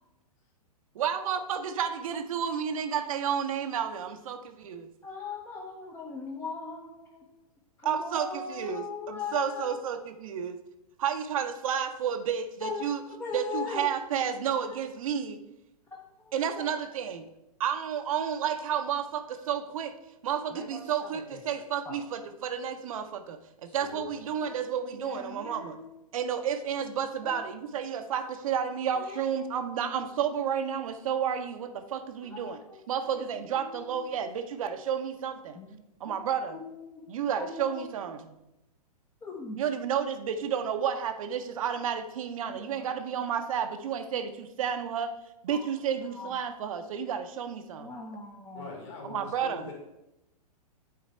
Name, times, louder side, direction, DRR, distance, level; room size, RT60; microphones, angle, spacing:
voice 1, 0.9-4.9 7.8-10.6 11.0-13.0 13.3-15.4 16.3-17.2 17.6-19.9 20.2-25.8 26.1-32.6 32.9-35.6 36.0-36.6 37.1-38.4 39.6-45.1 45.4-47.9 49.1-49.6, right 8 dB, 55° right, 8 dB, 0.7 m, -31 dB
voice 2, 5.0-7.4 7.8-9.8 12.6-13.9 14.7-14.8 15.9-16.7 20.5-21.4 21.8-22.0 23.6-24.6 25.0-25.9 27.2-27.4 28.9-29.2 32.3-32.8 33.1-34.1 35.5-35.7 36.1-37.1 37.4-37.9 39.2-39.6 42.5-43.0 45.5-45.7 46.1-46.4 47.8-48.7, left 5 dB, 10° left, -1 dB, 0.6 m, -40 dB
voice 3, 23.8-24.2 48.5-49.7, left 3 dB, 45° left, 0 dB, 2.3 m, -43 dB
8.5 x 3.9 x 4.3 m, 0.88 s
hypercardioid pair, 120°, 20 cm